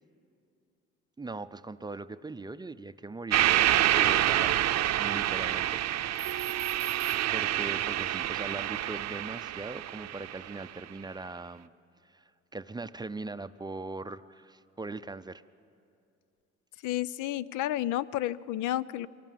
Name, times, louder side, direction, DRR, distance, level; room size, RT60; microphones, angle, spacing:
voice 1, 1.2-6.3 7.3-11.7 12.0-15.4, right 3 dB, 15° right, 12 dB, 0.5 m, -40 dB
sound 1, 3.3-10.6, right 12 dB, 65° right, 0.7 m, -27 dB
voice 2, 16.8-19.1, left 13 dB, 85° left, 18 dB, 0.5 m, -31 dB
23.5 x 18.0 x 7.5 m, 2.5 s
cardioid pair, 100°, 30 cm